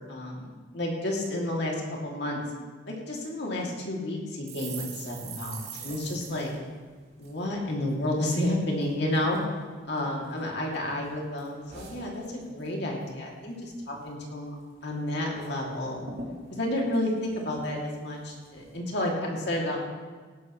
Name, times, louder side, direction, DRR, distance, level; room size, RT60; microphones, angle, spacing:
voice 1, 0.0-1.7 2.0-2.4 2.9-6.5 7.2-9.4 9.8-14.5 14.8-16.1 16.5-19.8, left 1 dB, 60° left, -2 dB, 2.8 m, -31 dB
sound 1, 4.5-8.0 8.3-8.5 8.8-9.4 9.9-10.7 11.0-12.7 13.0-13.2 13.5-14.1 14.4-14.5 14.8-15.5 15.8-15.9 16.1-17.9 18.4-18.8, right 4 dB, 55° right, 3.3 m, -44 dB
18.5 x 11.5 x 3.2 m, 1.4 s
head